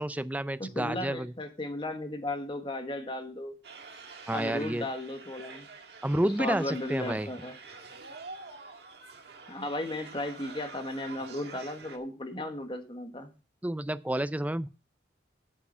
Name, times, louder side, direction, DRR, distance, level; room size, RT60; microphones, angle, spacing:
voice 1, 0.0-1.3 4.3-4.9 6.0-7.3 13.6-14.7, right 1 dB, 10° right, 0.4 m, -30 dB
voice 2, 0.6-3.6 4.3-5.7 6.4-7.6 9.5-13.3, left 1 dB, 25° left, 1.4 m, -35 dB
sound 1, 3.6-12.0, right 4 dB, 60° right, 1.6 m, -47 dB
8.6 x 7.2 x 5.6 m
head